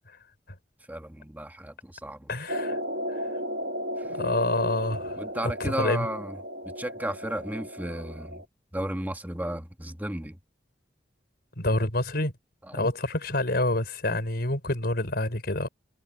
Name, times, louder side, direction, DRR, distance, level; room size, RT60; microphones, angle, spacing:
voice 1, 0.9-2.3 5.2-6.4 6.8-8.4 8.7-10.4 12.7-12.9, right 1 dB, 10° right, 1.8 m, -34 dB
voice 2, 2.3-2.8 4.1-6.1 11.6-12.3 12.7-15.7, left 1 dB, 60° left, 5.1 m, -27 dB
sound 1, 2.5-8.4, equal, 60° right, 1.9 m, -34 dB
head